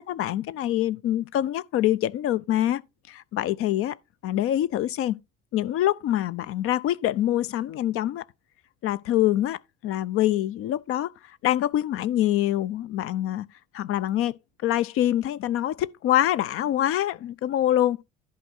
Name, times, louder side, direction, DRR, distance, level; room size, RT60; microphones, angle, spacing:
voice 1, 0.0-2.8 3.1-4.0 4.2-5.2 5.5-8.2 8.8-13.5 13.7-14.4 14.6-18.0, left 12 dB, 40° left, 0.6 m, -25 dB
11.0 x 4.8 x 4.4 m
figure-of-eight pair, 60°, 34 cm